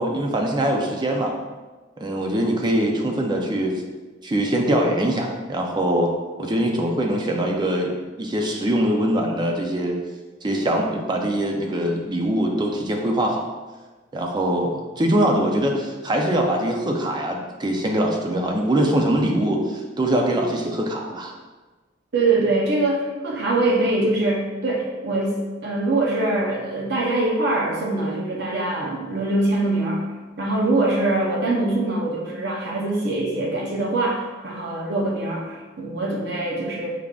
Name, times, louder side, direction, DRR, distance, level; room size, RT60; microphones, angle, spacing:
voice 1, 0.0-1.3 2.0-3.7 4.2-6.1 6.4-10.0 10.4-13.4 14.1-21.3, right 1 dB, 25° right, 1 dB, 0.5 m, -23 dB
voice 2, 22.1-25.4 25.6-30.1 30.4-36.9, right 2 dB, 65° right, -2 dB, 0.7 m, -23 dB
4.8 x 3.6 x 2.3 m, 1.2 s
head